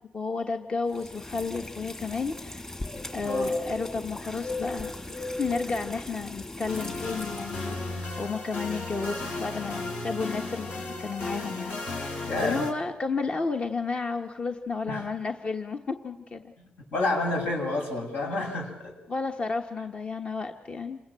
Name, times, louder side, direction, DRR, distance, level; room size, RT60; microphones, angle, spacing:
voice 1, 0.1-2.7 3.1-16.5 19.1-21.0, left 4 dB, 40° left, 4 dB, 1.3 m, -32 dB
sound 1, 1.0-7.6, left 2 dB, 25° left, 2.8 m, -36 dB
sound 2, 6.7-12.7, left 2 dB, 65° left, 5.6 m, -35 dB
voice 2, 12.3-12.6 14.9-15.1 16.6-19.0, left 2 dB, 85° left, 1 dB, 7.9 m, -29 dB
27.5 x 20.0 x 7.6 m, 0.95 s
cardioid pair, 85°, 3 cm